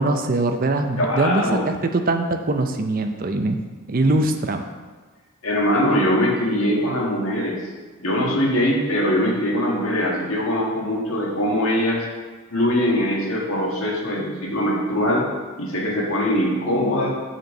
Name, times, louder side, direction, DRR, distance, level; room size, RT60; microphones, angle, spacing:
voice 1, 0.0-3.6 3.9-4.6, right 2 dB, 40° right, 5 dB, 0.5 m, -22 dB
voice 2, 1.0-1.7 5.4-7.6 8.0-12.0 12.5-15.3 15.6-17.1, left 1 dB, 70° left, -2 dB, 1.5 m, -22 dB
6.7 x 4.4 x 6.4 m, 1.3 s
head